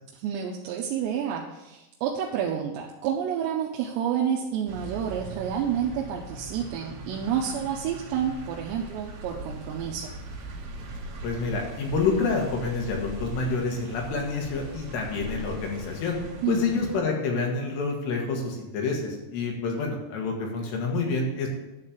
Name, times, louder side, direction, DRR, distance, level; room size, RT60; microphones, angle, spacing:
voice 1, 0.1-10.1 16.4-16.7, right 8 dB, 80° right, 0 dB, 2.9 m, -29 dB
sound 1, 4.7-17.0, right 2 dB, 65° right, 3.1 m, -40 dB
voice 2, 11.2-16.2 16.5-21.5, left 4 dB, 70° left, 0 dB, 3.5 m, -28 dB
11.0 x 4.3 x 7.4 m, 0.99 s
omnidirectional pair, 5.2 m